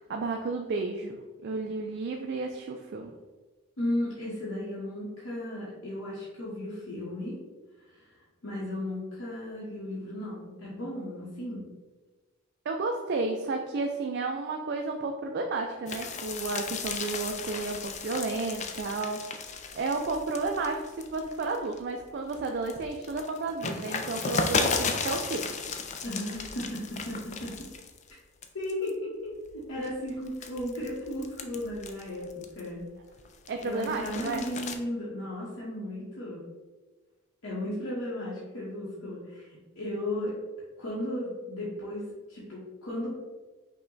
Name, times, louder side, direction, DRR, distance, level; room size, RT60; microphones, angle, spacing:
voice 1, 0.1-3.1 12.7-19.2 19.7-25.5 33.5-34.4, right 3 dB, 50° right, 3 dB, 0.3 m, -32 dB
voice 2, 3.8-7.4 7.8-8.1 8.4-11.6 26.0-27.5 28.5-32.8 33.6-36.4 37.4-40.3 40.8-43.1, left 1 dB, 75° left, -7 dB, 1.0 m, -35 dB
sound 1, 15.9-21.8 22.2-28.1 28.4-28.9 29.5-32.8 33.2-34.8, left 5 dB, 35° left, 0.3 m, -34 dB
5.5 x 2.2 x 3.8 m, 1.3 s
head